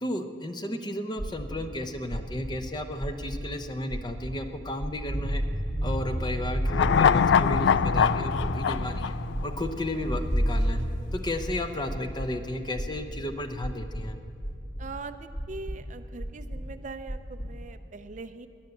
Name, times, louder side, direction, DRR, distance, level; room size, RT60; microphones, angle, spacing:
voice 1, 0.0-5.4 5.8-9.1 9.4-10.8 11.1-14.2, left 1 dB, 25° left, 6 dB, 0.8 m, -33 dB
sound 1, 1.2-1.6 2.1-2.5 3.0-3.5 3.9-4.3 4.8-5.2 5.7-6.1 6.6-7.0 7.5-8.0 8.4-8.9 9.3-9.8 10.2-10.6 11.1-12.3 12.7-13.2 13.6-14.1 14.4-14.9 15.3-15.8 16.2-16.7 17.1-17.5, equal, 45° left, 2.4 m, -35 dB
sound 2, 5.0-10.8, equal, ahead, 4.2 m, -29 dB
sound 3, 6.7-10.1 10.4-10.5, left 7 dB, 75° left, 0.3 m, -23 dB
voice 2, 14.8-18.5, right 3 dB, 40° right, 10 dB, 0.5 m, -41 dB
17.5 x 10.0 x 7.9 m, 2.5 s
head